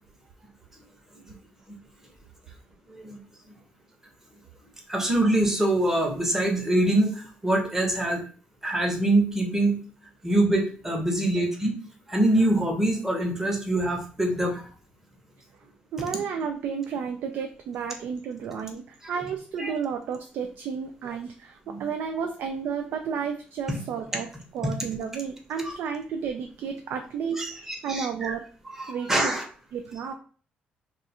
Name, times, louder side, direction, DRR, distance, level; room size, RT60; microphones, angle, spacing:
voice 1, 4.9-8.2 8.6-9.8 10.2-11.8 12.1-14.6 19.6-19.7 21.7-21.9 23.7-23.8 27.4-28.3 28.8-29.4, right 1 dB, 10° right, 1 dB, 0.9 m, -24 dB
voice 2, 15.9-28.5 28.9-29.4 29.7-30.1, right 6 dB, 75° right, 5 dB, 0.3 m, -32 dB
2.4 x 2.4 x 4.1 m, 0.40 s
cardioid pair, 115°, 3 cm